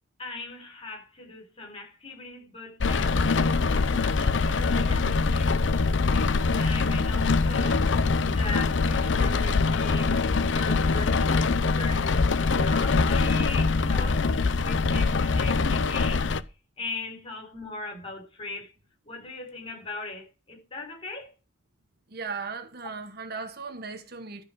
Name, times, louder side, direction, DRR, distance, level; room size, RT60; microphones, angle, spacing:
voice 1, 0.2-5.7 6.0-7.9 8.2-10.2 10.4-12.1 12.6-16.3 16.8-18.7 19.0-21.3, left 3 dB, 35° left, 4.4 m, -39 dB
Rain, 2.8-16.4, left 4 dB, 80° left, 0.6 m, -23 dB
voice 2, 22.1-24.4, right 4 dB, 60° right, 1.3 m, -37 dB
12.5 x 4.7 x 6.9 m
head